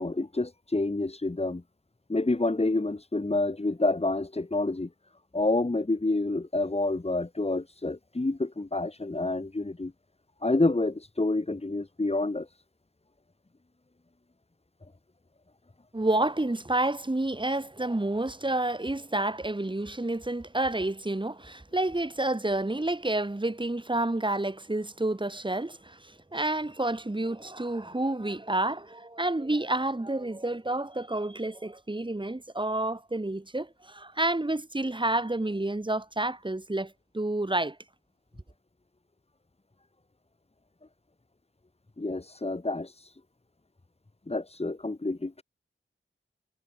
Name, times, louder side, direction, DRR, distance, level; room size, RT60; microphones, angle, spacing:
voice 1, 0.0-1.6 2.1-4.9 5.3-9.9 10.4-12.5 42.0-42.9 44.3-45.4, left 2 dB, 30° left, 3.8 m, -28 dB
voice 2, 15.9-37.8, right 2 dB, 25° right, 7.0 m, -29 dB
wide cardioid pair, 85°, 21 cm